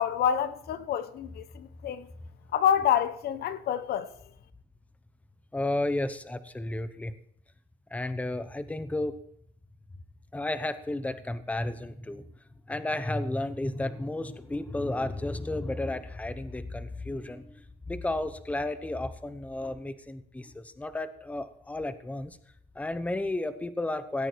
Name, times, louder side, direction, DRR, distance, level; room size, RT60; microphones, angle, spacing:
voice 1, 0.0-2.1 2.5-4.1, left 9 dB, 70° left, 1.0 m, -27 dB
voice 2, 5.5-7.1 7.9-9.2 10.3-12.2 12.7-22.4 22.7-24.3, left 2 dB, 10° left, 0.9 m, -32 dB
17.5 x 9.1 x 4.6 m
cardioid pair, 110°, 17 cm